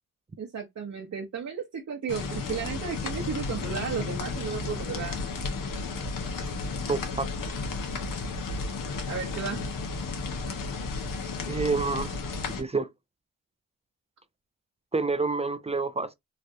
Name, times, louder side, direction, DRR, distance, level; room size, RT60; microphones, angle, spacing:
voice 1, 0.4-5.5 9.1-9.6, right 6 dB, 55° right, 0.8 m, -34 dB
sound 1, 2.1-12.6, left 4 dB, 80° left, 0.9 m, -33 dB
voice 2, 6.9-7.3 11.5-12.1 12.6-12.9 14.9-16.1, right 4 dB, 20° right, 0.4 m, -28 dB
3.2 x 2.4 x 2.6 m
cardioid pair, 65°, 32 cm